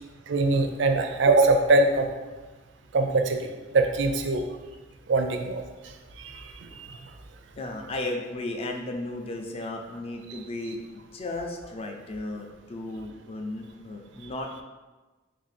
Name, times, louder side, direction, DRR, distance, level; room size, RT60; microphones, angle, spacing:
voice 1, 0.3-2.1 2.9-4.4 5.1-5.6 6.2-6.9, right 2 dB, 65° right, 5 dB, 0.4 m, -23 dB
voice 2, 7.6-14.5, left 2 dB, 30° left, 3 dB, 0.4 m, -35 dB
3.2 x 2.6 x 4.1 m, 1.2 s
head